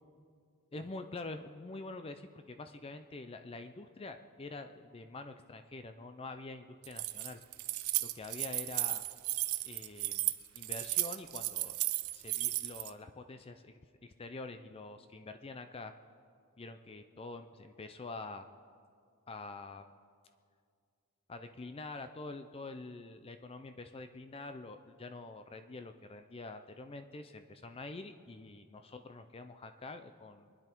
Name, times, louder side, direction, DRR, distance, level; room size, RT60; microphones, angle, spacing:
voice 1, 0.7-7.4 8.0-9.0 9.6-11.8 12.1-15.9 16.6-18.5 19.3-19.8 21.3-30.5, left 3 dB, 25° left, 8 dB, 0.5 m, -46 dB
Keys jangling, 6.8-12.9, right 17 dB, 70° right, 0.6 m, -34 dB
24.5 x 10.5 x 4.5 m, 2.2 s
head